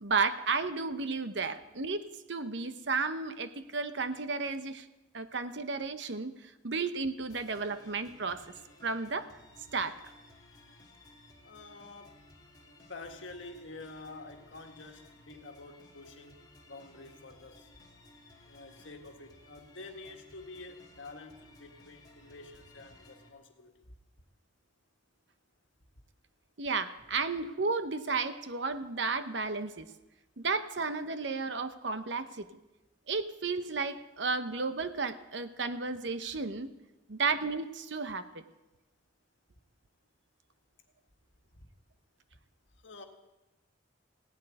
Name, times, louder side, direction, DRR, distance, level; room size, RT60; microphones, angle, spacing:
voice 1, 0.0-4.9 5.1-8.5 8.8-9.3 9.7-10.0 26.6-29.9 30.4-32.6 33.1-36.7 37.1-38.4, right 4 dB, 65° right, 11 dB, 0.8 m, -33 dB
sound 1, 7.3-23.3, left 2 dB, 20° left, 2.4 m, -58 dB
voice 2, 11.4-12.3 12.9-17.7 18.4-23.9 41.5-41.7 42.8-43.0, left 3 dB, 75° left, 4 dB, 1.7 m, -48 dB
16.5 x 7.7 x 9.8 m, 1.0 s
head